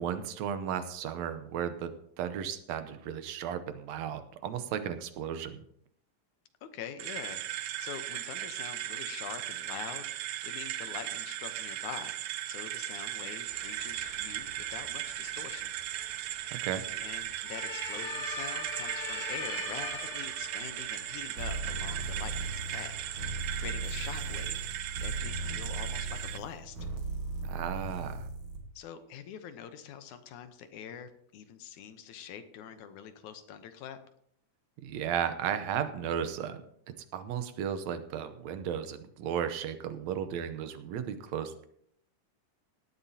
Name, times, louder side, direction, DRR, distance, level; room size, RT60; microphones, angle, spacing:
voice 1, 0.0-1.9 2.2-5.6 16.5-16.8 27.4-28.3 34.8-36.6 37.1-41.7, right 8 dB, 70° right, 10 dB, 1.8 m, -34 dB
voice 2, 6.6-12.2 12.5-15.7 17.0-26.8 28.8-34.0, left 8 dB, 70° left, 9 dB, 2.2 m, -45 dB
sound 1, 7.0-26.4, right 13 dB, 85° right, 1.5 m, -37 dB
sound 2, 13.5-24.7, left 3 dB, 50° left, 3.9 m, -44 dB
sound 3, 21.4-28.6, right 3 dB, 45° right, 2.0 m, -37 dB
18.0 x 12.0 x 2.8 m, 0.68 s
omnidirectional pair, 3.8 m